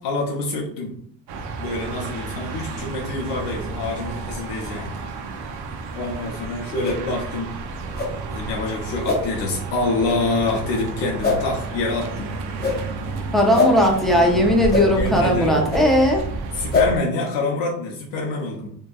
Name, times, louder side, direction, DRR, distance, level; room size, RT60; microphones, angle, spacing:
voice 1, 0.0-0.9 1.6-5.0 5.9-7.5 8.3-12.3 14.9-15.7 16.5-18.7, left 2 dB, 85° left, -1 dB, 0.7 m, -26 dB
sound 1, 1.3-17.0, right 3 dB, 65° right, 0.5 m, -31 dB
sound 2, 6.8-7.0 7.9-8.1 9.0-9.2 10.0-10.2 11.2-11.4 12.6-12.8 13.5-13.7 14.7-14.8 15.7-15.8 16.7-16.9, left 4 dB, 25° left, 0.8 m, -21 dB
voice 2, 13.3-16.3, equal, ahead, 0 dB, 0.4 m, -18 dB
2.7 x 2.2 x 2.2 m, 0.66 s
cardioid pair, 110°, 41 cm